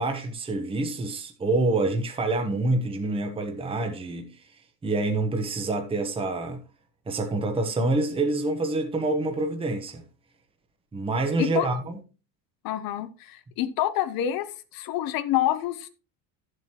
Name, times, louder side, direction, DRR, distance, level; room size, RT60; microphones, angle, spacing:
voice 1, 0.0-4.4 4.8-6.6 7.1-10.0 10.9-12.0, right 2 dB, 15° right, 1.0 m, -27 dB
voice 2, 12.6-15.9, left 12 dB, 55° left, 0.9 m, -27 dB
12.0 x 7.8 x 3.0 m
cardioid pair, 150°, 42 cm